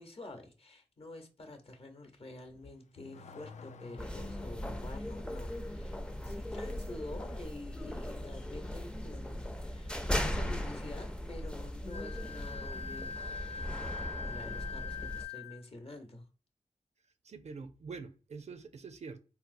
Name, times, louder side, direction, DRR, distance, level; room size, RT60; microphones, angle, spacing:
voice 1, 0.0-16.3, left 2 dB, 50° left, 0.8 m, -48 dB
Car / Accelerating revving vroom, 2.4-4.7, left 5 dB, 70° left, 0.4 m, -52 dB
sound 1, 4.0-15.3, left 1 dB, 5° left, 0.4 m, -38 dB
Wind instrument woodwind instrument, 11.9-15.6, left 6 dB, 85° left, 0.8 m, -42 dB
voice 2, 17.2-19.2, right 4 dB, 60° right, 0.4 m, -45 dB
4.2 x 2.0 x 2.5 m
cardioid pair, 55°, 13 cm